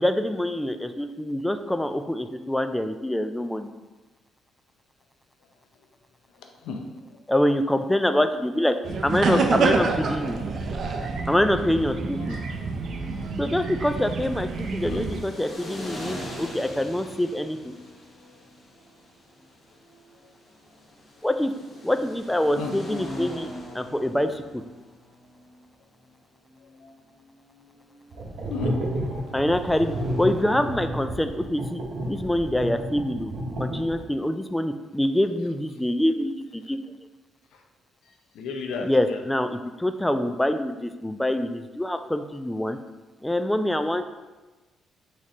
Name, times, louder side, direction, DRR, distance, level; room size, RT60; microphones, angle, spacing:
voice 1, 0.0-3.7 7.3-8.7 9.0-10.4 11.3-12.4 13.4-17.8 21.2-21.5 21.8-23.5 23.7-24.6 29.3-31.8 32.1-33.3 33.6-36.8 38.8-42.8 43.2-44.0, left 1 dB, 5° left, 9 dB, 0.3 m, -25 dB
voice 2, 6.3-7.2 9.3-9.5 12.2-12.9 14.9-15.1 22.6-22.7 26.6-26.9 28.5-28.8 37.5-37.6 38.0-39.2, left 4 dB, 85° left, 3 dB, 0.6 m, -34 dB
sound 1, 8.8-15.2, right 4 dB, 55° right, 0.5 m, -27 dB
sound 2, 13.7-31.6, left 1 dB, 30° left, 1.2 m, -42 dB
sound 3, 28.1-34.2, right 1 dB, 75° right, 0.9 m, -31 dB
4.1 x 3.1 x 4.1 m, 1.2 s
cardioid pair, 90°, 0 cm